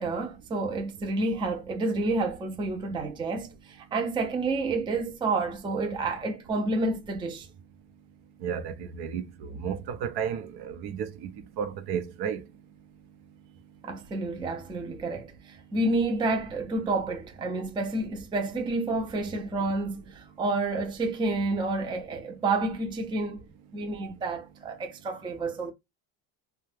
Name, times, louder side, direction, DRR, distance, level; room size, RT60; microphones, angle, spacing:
voice 1, 0.0-7.5 13.8-23.4 23.7-25.7, right 2 dB, 10° right, 0.4 m, -29 dB
voice 2, 8.4-11.3 11.6-12.4, right 7 dB, 60° right, 0.7 m, -33 dB
2.7 x 2.2 x 3.2 m
cardioid pair, 130°, 43 cm